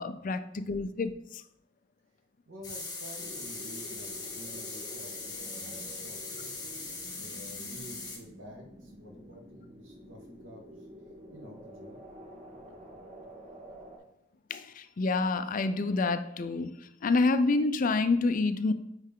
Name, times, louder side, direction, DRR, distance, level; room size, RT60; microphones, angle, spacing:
voice 1, 0.0-1.4 14.5-16.7 17.0-18.7, left 3 dB, 45° left, 11 dB, 0.4 m, -28 dB
voice 2, 2.5-6.6 7.2-10.9 11.3-12.0, equal, 85° right, 0 dB, 1.7 m, -50 dB
sound 1, 2.6-8.2, left 3 dB, 20° left, 1.5 m, -40 dB
sound 2, 3.2-14.0, equal, 40° right, 1.4 m, -49 dB
9.3 x 3.3 x 3.7 m, 0.81 s
head